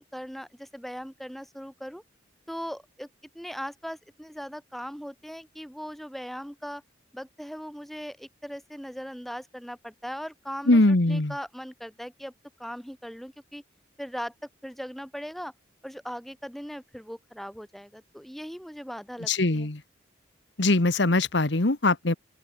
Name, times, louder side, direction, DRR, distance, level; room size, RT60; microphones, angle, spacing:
voice 1, 0.0-2.0 2.5-3.1 3.3-6.8 7.1-12.3 12.6-13.6 14.0-15.5 15.8-19.7, equal, ahead, 7.0 m, -39 dB
voice 2, 10.7-11.3 19.3-19.8 20.6-22.1, left 2 dB, 70° left, 1.5 m, -22 dB
open air
head